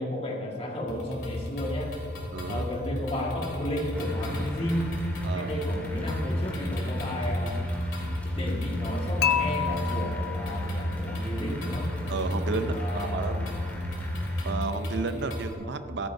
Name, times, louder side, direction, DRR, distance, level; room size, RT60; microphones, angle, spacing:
voice 1, 0.0-1.9 2.5-5.0 5.3-7.6 8.2-12.0 12.7-13.3 15.6-15.7, left 1 dB, 30° left, -1 dB, 1.7 m, -33 dB
sound 1, 0.9-15.5, left 1 dB, 75° left, 3.0 m, -36 dB
voice 2, 2.3-2.7 5.2-5.5 12.1-13.5 14.4-16.1, right 3 dB, 60° right, 9 dB, 0.6 m, -32 dB
sound 2, 3.9-14.5, equal, 10° left, 2.0 m, -33 dB
Dishes pots and pans / Chink clink, 9.2-11.3, left 9 dB, 55° left, 0.5 m, -30 dB
15.0 x 13.0 x 2.7 m, 2.7 s
head